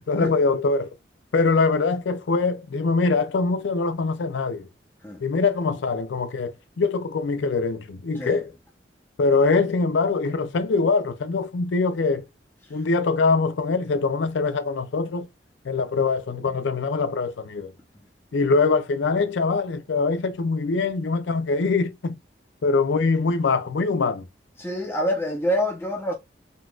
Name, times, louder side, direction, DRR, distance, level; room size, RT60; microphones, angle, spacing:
voice 1, 0.1-0.9 1.3-4.7 5.2-8.5 9.2-12.3 12.7-15.3 15.6-17.7 18.3-22.2 22.6-24.3, left 4 dB, 90° left, 0.4 m, -23 dB
voice 2, 24.6-26.1, equal, 15° left, 0.8 m, -26 dB
3.8 x 2.4 x 2.3 m
head